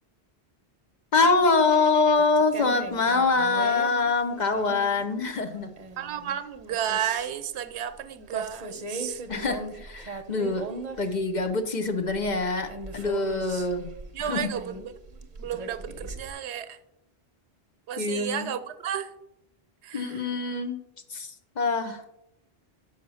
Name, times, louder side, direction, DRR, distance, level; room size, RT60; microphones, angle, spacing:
voice 1, 1.1-5.7 9.3-10.7 11.0-13.9 14.2-14.5 18.0-18.5 19.9-20.8 21.1-22.0, left 3 dB, 50° left, 8 dB, 0.7 m, -25 dB
sound 1, 1.7-1.8 2.2-7.3 8.0-8.1 8.3-11.1 11.4-11.5 11.7-16.3, right 2 dB, 45° right, 0.7 m, -39 dB
voice 2, 6.0-9.2 14.1-14.9 15.4-16.8 17.9-19.1 19.8-20.3, right 9 dB, 85° right, 12 dB, 0.9 m, -32 dB
5.9 x 5.8 x 6.2 m, 0.86 s
omnidirectional pair, 1.1 m